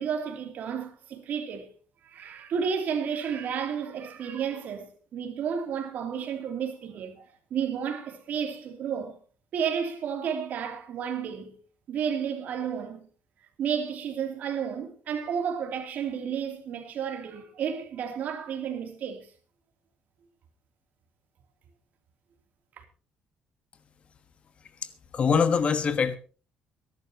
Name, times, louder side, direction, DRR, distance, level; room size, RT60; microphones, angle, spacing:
voice 1, 0.0-1.7 2.0-9.2 9.5-11.6 11.9-13.0 13.6-19.3 22.8-22.9, right 7 dB, 55° right, 2.9 m, -32 dB
voice 2, 24.8-26.2, left 6 dB, 35° left, 1.3 m, -24 dB
23.5 x 11.5 x 2.9 m
cardioid pair, 165°, 3 cm